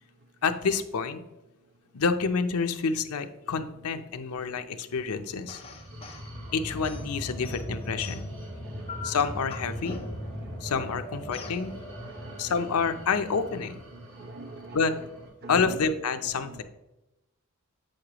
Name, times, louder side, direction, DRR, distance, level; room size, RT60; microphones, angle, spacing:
voice 1, 0.4-1.2 1.9-5.6 6.5-8.3 9.0-10.0 10.6-11.7 12.4-13.8 14.7-14.9 15.5-16.6, left 5 dB, 80° left, 0.6 m, -28 dB
sound 1, 5.5-6.3 6.8-8.4 8.9-10.4 11.3-11.6, left 4 dB, 25° left, 0.9 m, -42 dB
sound 2, 5.6-15.3, equal, 65° right, 2.4 m, -40 dB
voice 2, 5.9-6.4 8.6-9.1 10.4-10.7 11.8-12.5 13.9-14.8 15.4-15.8 16.4-16.6, right 2 dB, 45° right, 0.7 m, -44 dB
8.0 x 6.4 x 2.9 m
head